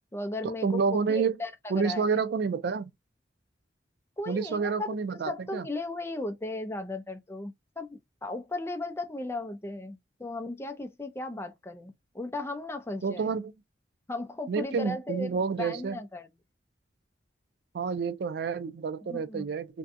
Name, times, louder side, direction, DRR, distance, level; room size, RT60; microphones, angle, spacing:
voice 1, 0.1-2.1 4.2-13.3 14.1-16.3 19.1-19.4, left 2 dB, 15° left, 0.5 m, -36 dB
voice 2, 0.6-1.4 1.7-2.9 4.3-5.7 13.0-13.5 14.5-16.0 17.7-19.8, right 5 dB, 60° right, 0.4 m, -29 dB
2.6 x 2.2 x 2.5 m
head